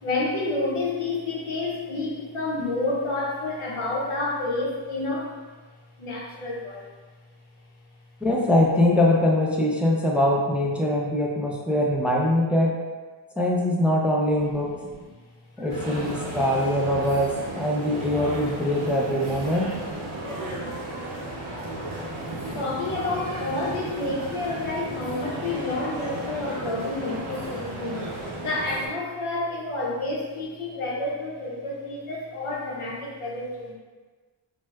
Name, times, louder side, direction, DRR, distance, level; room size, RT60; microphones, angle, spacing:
voice 1, 0.0-5.3 6.0-6.8 14.8-14.9 15.6-15.9 16.2-16.3 18.0-18.1 20.0-20.2 22.5-28.1 28.4-33.7, left 2 dB, 90° left, -3 dB, 0.7 m, -29 dB
voice 2, 8.2-12.7 13.4-14.7 15.6-19.7, left 1 dB, 5° right, -3 dB, 0.4 m, -22 dB
sound 1, 15.7-28.9, right 2 dB, 85° right, 0.7 m, -34 dB
4.4 x 2.0 x 2.2 m, 1.4 s
cardioid pair, 45°, 49 cm